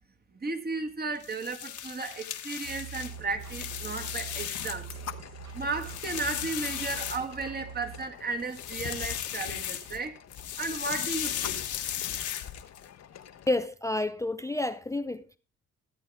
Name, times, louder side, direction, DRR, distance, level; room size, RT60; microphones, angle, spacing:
voice 1, 0.3-4.9 5.5-10.2 10.6-11.6, right 3 dB, 30° right, 1.8 m, -34 dB
sound 1, 1.2-5.0 5.4-7.6 8.4-10.0 10.3-12.8, left 10 dB, 75° left, 1.5 m, -36 dB
sound 2, 2.6-8.0, right 7 dB, 65° right, 3.8 m, -44 dB
sound 3, 3.0-13.7, left 9 dB, 60° left, 1.0 m, -48 dB
voice 2, 13.5-15.4, left 2 dB, 10° left, 0.5 m, -30 dB
14.5 x 8.3 x 3.5 m
cardioid pair, 90°, 30 cm